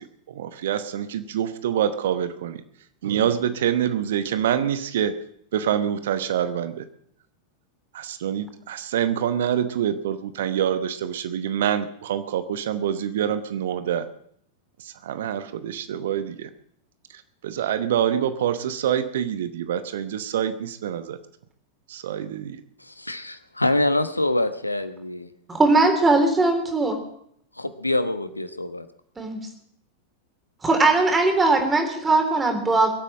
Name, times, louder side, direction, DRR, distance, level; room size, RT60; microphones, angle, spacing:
voice 1, 0.0-2.6 3.0-5.2 5.5-6.8 7.9-14.1 14.8-16.5 17.1-21.2 21.9-22.6, right 9 dB, 60° right, 11 dB, 0.9 m, -26 dB
voice 2, 22.8-25.3 27.5-28.9, left 1 dB, 85° left, 11 dB, 1.0 m, -25 dB
voice 3, 25.5-27.0 29.2-29.4 30.6-32.9, right 3 dB, 15° right, 4 dB, 3.7 m, -19 dB
22.5 x 8.4 x 7.6 m, 0.69 s
figure-of-eight pair, 90°, 0 cm